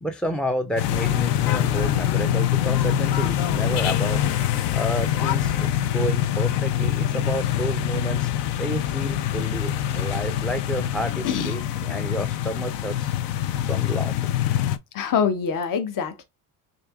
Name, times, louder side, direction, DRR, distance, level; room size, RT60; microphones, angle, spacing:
voice 1, 0.0-4.2 4.7-8.3 8.6-13.1 13.7-14.3, right 1 dB, ahead, 0.4 m, -30 dB
sound 1, 0.8-14.8, left 11 dB, 60° left, 0.6 m, -24 dB
voice 2, 14.9-16.2, left 7 dB, 45° left, 0.9 m, -24 dB
6.5 x 2.8 x 2.3 m
supercardioid pair, 80°, 47 cm